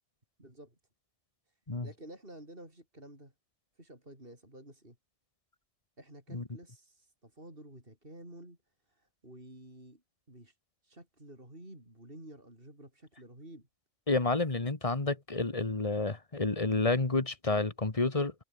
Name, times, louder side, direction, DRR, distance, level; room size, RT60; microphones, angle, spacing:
voice 1, 0.4-0.8 1.5-1.6 1.8-3.3 3.8-5.0 6.0-8.6 8.9-10.6 10.8-13.7, right 1 dB, 45° right, 8.0 m, -51 dB
voice 2, 14.1-18.3, left 3 dB, 25° left, 1.9 m, -30 dB
omnidirectional pair, 1.3 m